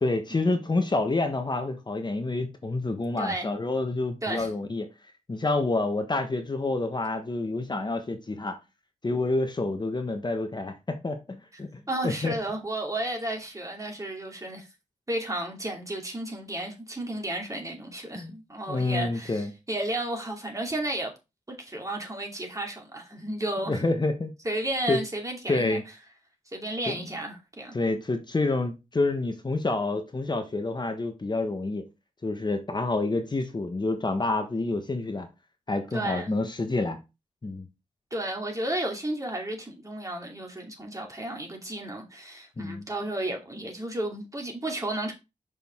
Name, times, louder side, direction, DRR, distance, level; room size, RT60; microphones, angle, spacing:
voice 1, 0.0-4.9 5.3-8.6 9.0-12.3 18.2-18.3 18.7-19.5 23.7-24.3 24.9-25.0 25.5-25.8 26.9-27.0 27.7-31.8 32.2-35.3 35.7-37.0 37.4-37.7 42.6-42.9, left 2 dB, 35° left, 1.2 m, -28 dB
voice 2, 3.2-3.5 4.2-4.5 11.9-14.7 15.1-21.1 21.5-23.8 24.4-25.8 26.5-27.8 35.9-36.4 38.1-45.1, right 1 dB, 25° right, 2.5 m, -33 dB
6.2 x 5.2 x 3.7 m
cardioid pair, 55°, 13 cm